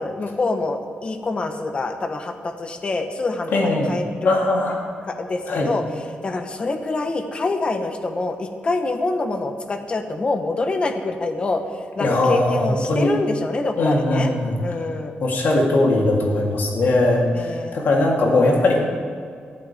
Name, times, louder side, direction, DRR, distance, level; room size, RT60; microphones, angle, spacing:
voice 1, 0.0-4.3 5.0-11.6 11.9-14.3 14.6-15.1 17.3-17.8, left 3 dB, 30° left, 5 dB, 1.2 m, -26 dB
voice 2, 3.5-3.9 4.2-4.8 5.5-5.7 12.0-13.1 13.8-14.6 15.2-18.8, left 2 dB, 65° left, -2 dB, 3.3 m, -19 dB
21.0 x 14.5 x 3.6 m, 2.2 s
wide cardioid pair, 160°, 4 cm